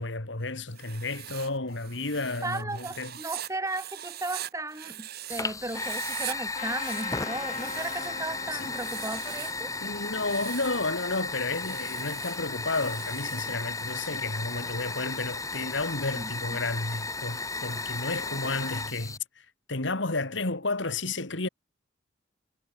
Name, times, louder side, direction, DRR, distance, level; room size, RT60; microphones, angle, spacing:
voice 1, 0.0-3.1 8.5-8.8 9.8-19.2 19.7-21.5, left 3 dB, 65° left, 2.3 m, -32 dB
Writing, 0.7-5.4 5.7-6.4 6.7-8.2 8.6-9.6 10.1-10.8 11.5-13.5, right 12 dB, 55° right, 1.1 m, -41 dB
voice 2, 2.4-9.7 16.2-16.6, right 2 dB, 15° right, 3.6 m, -36 dB
Fire, 5.3-19.2, left 3 dB, 15° left, 1.8 m, -35 dB
Trumpet, 6.5-11.6, left 5 dB, 35° left, 3.1 m, -42 dB
head